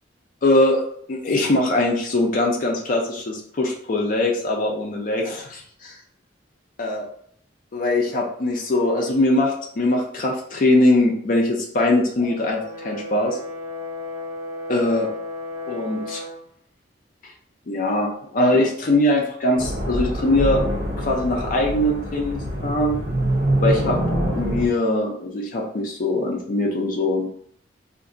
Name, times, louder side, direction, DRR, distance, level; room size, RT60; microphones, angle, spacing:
voice 1, 0.4-0.8 1.1-6.0 6.8-7.1 7.7-13.4 14.7-15.1 15.7-16.2 17.7-20.6 21.0-23.0 23.6-24.0 24.3-27.3, left 1 dB, 50° left, 0 dB, 0.5 m, -21 dB
Brass instrument, 12.2-16.4, left 2 dB, 15° right, 0.7 m, -34 dB
sound 1, 19.6-24.7, right 1 dB, 60° right, 0.8 m, -24 dB
2.5 x 2.4 x 3.8 m, 0.63 s
head